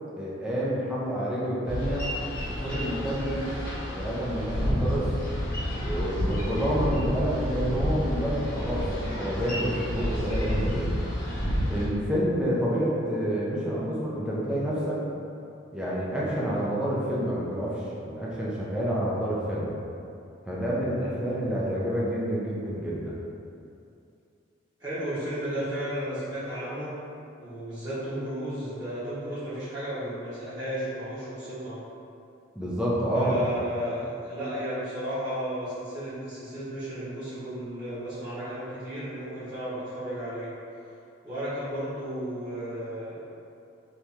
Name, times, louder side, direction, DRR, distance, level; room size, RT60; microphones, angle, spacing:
voice 1, 0.2-2.0 2.6-3.4 3.9-5.1 5.8-11.1 11.7-15.0 15.7-19.7 20.5-23.1 32.6-33.4, equal, 5° right, -7 dB, 0.5 m, -28 dB
Boat Water vehicle, 1.7-11.9, equal, 45° left, 1.1 m, -30 dB
voice 2, 24.8-26.9 27.4-31.8 33.1-40.5 41.2-43.2, equal, 20° right, -14 dB, 1.0 m, -33 dB
3.0 x 2.7 x 3.5 m, 2.6 s
head